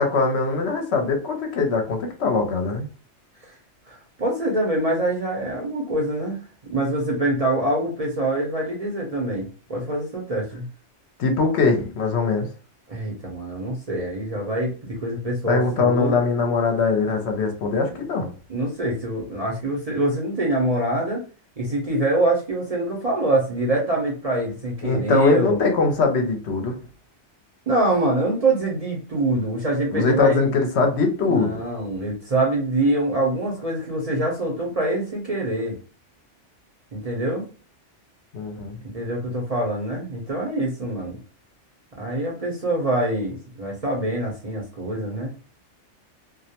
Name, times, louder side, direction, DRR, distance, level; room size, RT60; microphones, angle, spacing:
voice 1, 0.0-2.9 11.2-12.5 15.5-18.3 24.8-26.7 29.9-31.6 38.3-38.8, left 4 dB, 70° left, 4 dB, 0.8 m, -21 dB
voice 2, 3.9-6.4 6.6-10.7 12.9-16.2 18.5-21.2 21.6-25.6 27.7-30.4 31.2-35.8 36.9-37.5 38.9-41.2 42.0-45.3, right 1 dB, 40° right, -2 dB, 0.6 m, -25 dB
2.4 x 2.0 x 2.7 m, 0.35 s
omnidirectional pair, 1.2 m